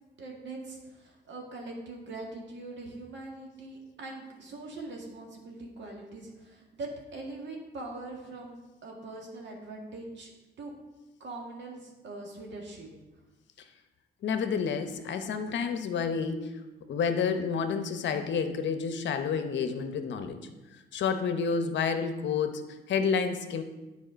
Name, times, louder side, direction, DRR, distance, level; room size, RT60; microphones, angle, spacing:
voice 1, 0.2-10.3 10.6-10.7 11.2-12.9, right 2 dB, 65° right, 0 dB, 2.0 m, -42 dB
voice 2, 14.2-16.6 16.9-23.6, left 6 dB, 65° left, 8 dB, 0.8 m, -30 dB
9.6 x 4.8 x 5.1 m, 1.1 s
cardioid pair, 90°, 20 cm